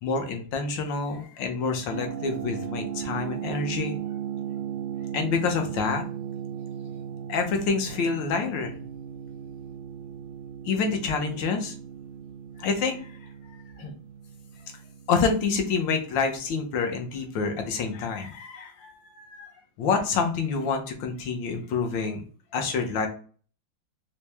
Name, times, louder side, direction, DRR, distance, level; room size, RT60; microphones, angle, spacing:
voice 1, 0.0-4.0 5.1-6.0 7.3-8.8 10.6-11.7 12.6-13.2 13.8-13.9 15.1-19.5 19.8-22.2 22.5-23.1, left 5 dB, 75° left, 4 dB, 1.4 m, -27 dB
sound 1, 1.9-16.7, right 9 dB, 75° right, 1.3 m, -37 dB
4.5 x 2.0 x 3.3 m, 0.42 s
omnidirectional pair, 2.1 m